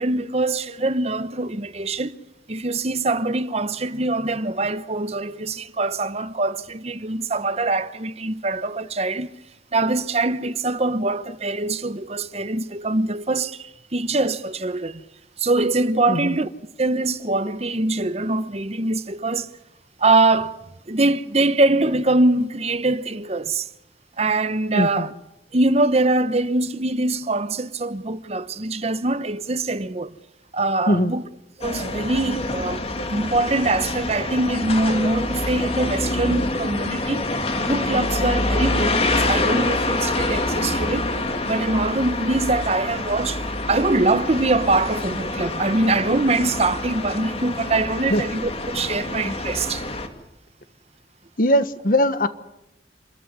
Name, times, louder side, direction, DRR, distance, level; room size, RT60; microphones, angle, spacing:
voice 1, 0.0-2.2 2.5-9.3 9.7-15.0 15.4-16.5 16.8-19.6 20.0-20.6 20.9-23.7 24.2-25.1 25.5-30.1 30.5-31.2 31.6-32.8 33.1-37.3 37.6-41.1 41.4-49.8, right 2 dB, 35° right, 0.9 m, -23 dB
voice 2, 24.7-25.1 30.9-31.1 48.1-48.2 51.4-52.3, equal, 50° left, 1.3 m, -20 dB
sound 1, 31.6-50.1, left 2 dB, 35° left, 2.5 m, -26 dB
27.5 x 14.0 x 9.7 m
head